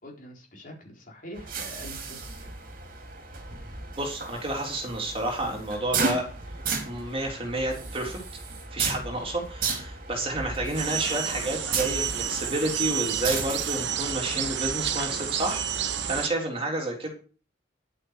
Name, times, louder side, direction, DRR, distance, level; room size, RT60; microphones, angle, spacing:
voice 1, 0.0-2.5 10.1-10.3 15.9-16.2, equal, 45° left, 0 dB, 4.1 m, -45 dB
sound 1, 1.3-16.2, right 4 dB, 50° right, 2.9 m, -35 dB
voice 2, 4.0-6.3 6.9-8.2 8.7-17.1, right 1 dB, 30° right, 1 dB, 3.7 m, -30 dB
sound 2, 10.7-16.3, right 9 dB, 65° right, 1.0 m, -30 dB
10.5 x 8.7 x 6.5 m, 0.38 s
head